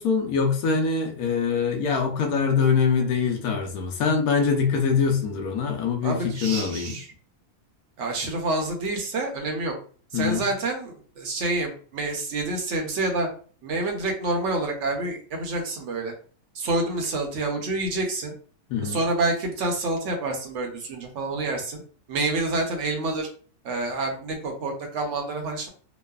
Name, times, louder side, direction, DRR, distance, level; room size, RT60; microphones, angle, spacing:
voice 1, 0.0-6.9 10.1-10.5 18.7-19.0, left 5 dB, 75° left, 1.0 m, -24 dB
voice 2, 6.0-7.1 8.0-9.7 10.1-13.3 13.6-16.1 16.5-18.3 18.8-21.8 22.1-23.3 23.6-25.7, right 2 dB, 60° right, 0.9 m, -28 dB
3.0 x 2.0 x 2.3 m
omnidirectional pair, 1.6 m